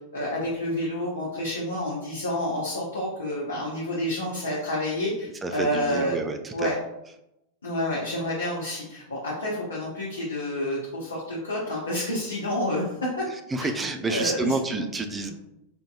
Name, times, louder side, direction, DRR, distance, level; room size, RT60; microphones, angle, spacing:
voice 1, 0.1-6.2 6.5-6.7 7.6-13.2 13.6-13.7 14.1-14.5 15.2-15.3, left 1 dB, 70° left, -6 dB, 0.8 m, -29 dB
voice 2, 5.4-6.7 13.3-15.3, right 3 dB, 15° right, 6 dB, 0.4 m, -29 dB
4.3 x 2.6 x 2.3 m, 0.86 s
figure-of-eight pair, 90°, 0 cm